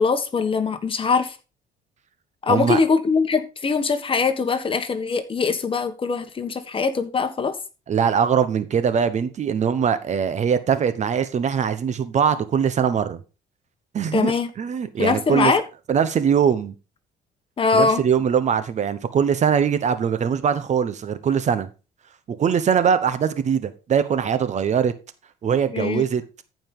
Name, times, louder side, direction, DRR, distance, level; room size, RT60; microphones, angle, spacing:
voice 1, 0.0-1.4 2.4-7.6 14.1-14.5 15.0-15.6 17.6-18.0 25.7-26.0, left 4 dB, 30° left, 1.3 m, -22 dB
voice 2, 2.5-2.8 7.9-13.2 13.9-15.5 15.9-16.7 17.7-21.7 22.3-24.9 25.4-26.2, right 7 dB, 45° right, 1.0 m, -21 dB
14.0 x 5.2 x 3.8 m
cardioid pair, 110°, 17 cm